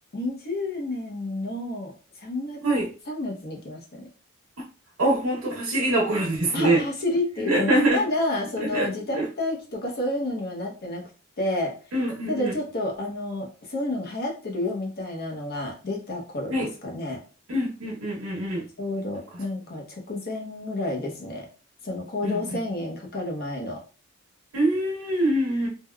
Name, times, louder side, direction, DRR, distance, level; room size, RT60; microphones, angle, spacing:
voice 1, 0.1-1.9 2.2-4.1 6.5-11.1 11.4-11.8 12.3-17.2 18.8-21.5 21.8-23.8, left 2 dB, 45° left, 0 dB, 0.7 m, -30 dB
voice 2, 5.0-6.8 7.4-8.0 8.6-8.9 9.1-9.3 11.9-12.5 16.5-16.7 17.5-18.6 22.2-22.6 24.5-25.7, right 1 dB, 75° right, -3 dB, 0.9 m, -24 dB
3.4 x 2.2 x 2.2 m, 0.35 s
head